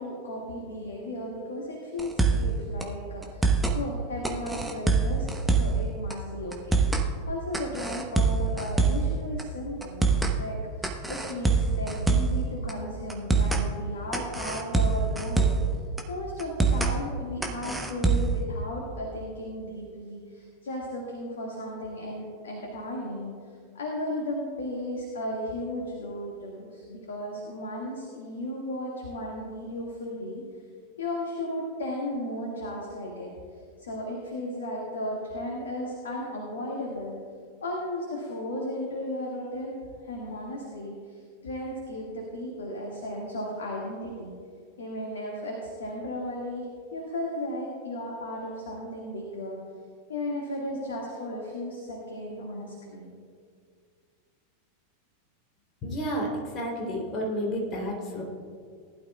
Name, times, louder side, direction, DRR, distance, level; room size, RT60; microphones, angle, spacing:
voice 1, 0.0-5.3 5.6-6.8 7.3-15.5 16.1-23.3 23.7-30.4 31.0-33.3 33.8-37.1 37.6-44.3 44.8-49.6 50.1-53.1, left 1 dB, 65° left, -1 dB, 1.8 m, -35 dB
sound 1, 2.0-2.5 2.8-2.9 3.2-3.8 4.2-5.8 6.1-6.2 6.5-7.1 7.5-9.1 9.4-9.5 9.8-10.3 10.8-12.4 12.7-12.8 13.1-13.6 14.1-15.7 16.0-16.1 16.4-16.9 17.4-18.4, right 4 dB, 5° right, 1.1 m, -24 dB
voice 2, 55.8-58.2, equal, 30° left, -1 dB, 3.1 m, -31 dB
19.5 x 12.0 x 2.3 m, 2.1 s
figure-of-eight pair, 90°, 0 cm